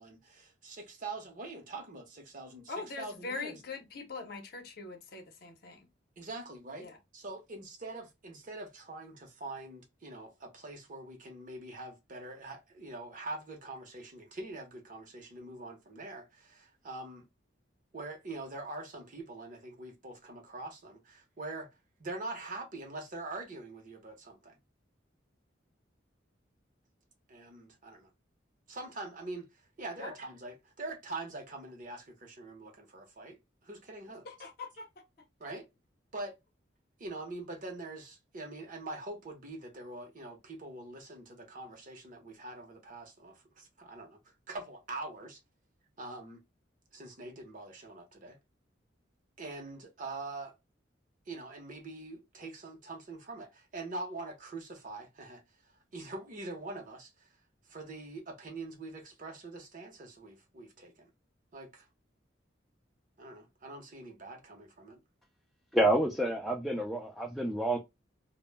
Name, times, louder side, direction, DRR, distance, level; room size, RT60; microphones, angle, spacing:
voice 1, 0.0-3.6 6.2-17.3 17.9-21.7 22.0-24.6 27.3-28.1 28.7-34.3 35.4-35.7 36.1-36.4 37.0-45.4 46.0-46.4 46.9-48.4 49.4-50.5 51.3-55.4 55.9-57.3 57.7-61.1 61.5-61.9 63.2-65.0, right 2 dB, 45° right, 0.7 m, -44 dB
voice 2, 2.7-5.9 6.8-6.9 30.0-30.1 34.3-35.0, left 4 dB, 55° left, 0.6 m, -42 dB
voice 3, 65.7-67.8, right 1 dB, ahead, 0.3 m, -28 dB
2.0 x 2.0 x 3.1 m
head